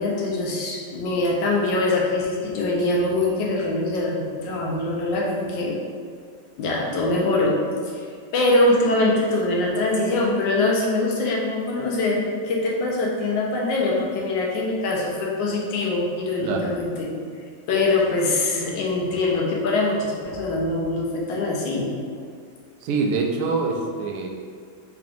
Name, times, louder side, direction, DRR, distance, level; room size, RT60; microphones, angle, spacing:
voice 1, 0.0-5.8 6.6-7.6 7.8-17.1 17.7-21.9, left 2 dB, 75° left, -3 dB, 1.4 m, -23 dB
voice 2, 16.4-16.7 22.8-24.3, right 4 dB, 80° right, 0 dB, 0.8 m, -25 dB
4.7 x 3.5 x 2.5 m, 2.1 s
omnidirectional pair, 2.1 m